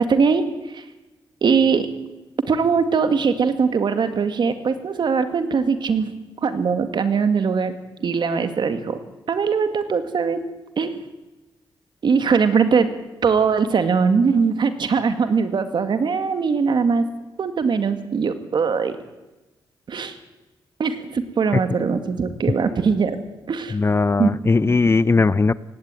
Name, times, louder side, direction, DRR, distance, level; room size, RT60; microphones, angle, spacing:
voice 1, 0.1-0.4 0.7-0.8 1.4-1.9 2.5-6.1 6.4-7.7 8.0-9.0 9.3-10.4 10.8-11.0 12.0-12.9 13.2-17.0 17.4-19.0 19.9-20.2 20.8-23.2 23.5-23.8 24.2-24.3, right 5 dB, 60° right, 9 dB, 2.1 m, -21 dB
voice 2, 23.7-25.5, left 3 dB, 30° left, 19 dB, 0.6 m, -18 dB
19.0 x 16.0 x 9.1 m, 1.1 s
cardioid pair, 70°, 9 cm